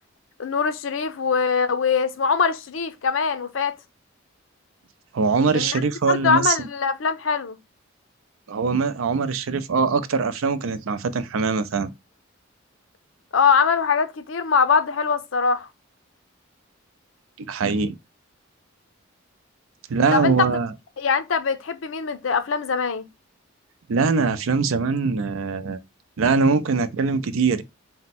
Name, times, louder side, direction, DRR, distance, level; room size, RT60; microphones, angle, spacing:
voice 1, 0.4-3.8 5.5-5.8 6.1-7.6 13.3-15.7 20.1-20.5 21.0-23.1, left 5 dB, 70° left, 0.5 m, -22 dB
voice 2, 5.1-6.7 8.5-11.9 17.4-17.9 19.9-20.7 23.9-25.8 26.2-27.6, right 4 dB, 85° right, 0.5 m, -22 dB
4.3 x 2.1 x 4.1 m
head